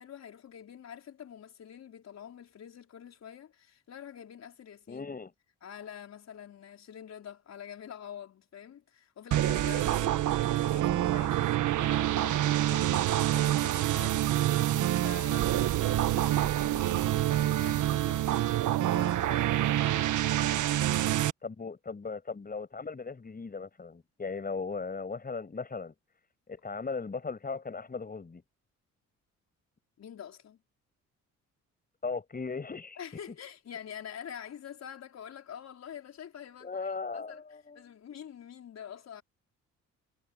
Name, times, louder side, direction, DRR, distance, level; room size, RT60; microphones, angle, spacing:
voice 1, 0.0-5.2 5.6-19.7 30.0-30.6 33.0-37.4 37.8-39.2, left 9 dB, 60° left, 5.1 m, -47 dB
voice 2, 4.9-5.3 21.4-25.9 26.5-28.4 32.0-33.0 36.6-37.8, left 4 dB, 30° left, 7.9 m, -37 dB
sound 1, 9.3-21.3, right 13 dB, 75° right, 1.5 m, -27 dB
cardioid pair, 90°, 30 cm